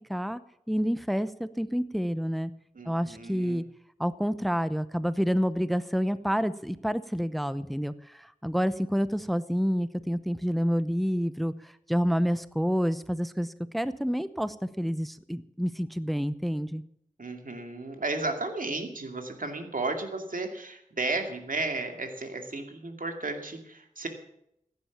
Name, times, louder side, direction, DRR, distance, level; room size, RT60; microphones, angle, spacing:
voice 1, 0.1-0.4 0.7-2.5 2.8-3.6 4.0-16.8, equal, ahead, 14 dB, 0.8 m, -28 dB
voice 2, 2.8-3.6 17.2-24.1, right 3 dB, 85° right, 5 dB, 2.4 m, -33 dB
15.5 x 10.5 x 7.2 m, 0.75 s
wide cardioid pair, 45°, 14 cm